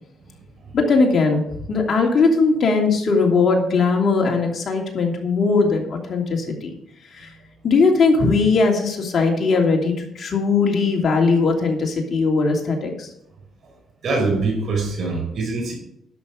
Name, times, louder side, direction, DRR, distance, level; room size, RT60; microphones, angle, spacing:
voice 1, 0.7-6.8 7.1-7.3 7.6-13.1, left 4 dB, 50° left, 1 dB, 2.9 m, -19 dB
voice 2, 14.0-15.8, right 3 dB, 60° right, 1 dB, 5.1 m, -23 dB
11.0 x 6.8 x 6.4 m, 0.77 s
cardioid pair, 90°, 0 cm